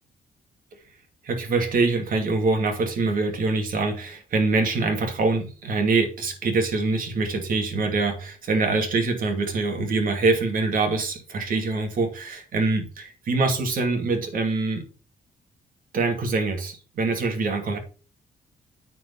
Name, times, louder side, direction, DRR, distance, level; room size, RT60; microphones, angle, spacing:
voice 1, 1.2-14.8 15.9-17.8, right 3 dB, 60° right, 2.6 m, -24 dB
9.2 x 4.8 x 5.6 m
cardioid pair, 125°, 16 cm